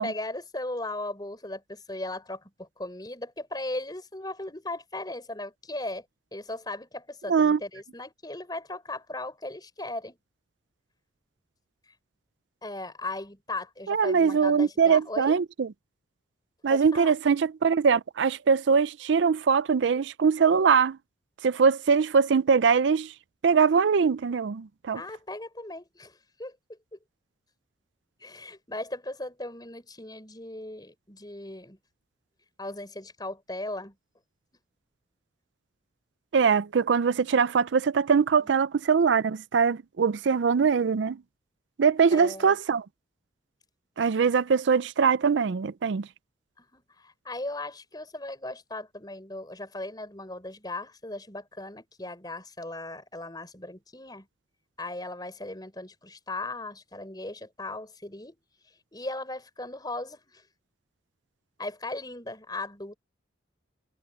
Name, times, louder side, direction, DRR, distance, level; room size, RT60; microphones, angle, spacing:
voice 1, 0.0-6.0 6.3-10.2 12.6-15.4 16.7-17.1 24.9-27.0 28.2-31.8 32.6-33.9 42.1-42.6 46.6-54.3 54.8-58.4 58.9-60.4 61.6-63.0, left 2 dB, 20° left, 5.2 m, -37 dB
voice 2, 7.3-7.6 13.9-15.7 16.6-21.0 21.4-23.1 23.4-25.0 36.3-41.2 41.8-42.9 44.0-46.1, right 6 dB, 70° right, 0.4 m, -22 dB
head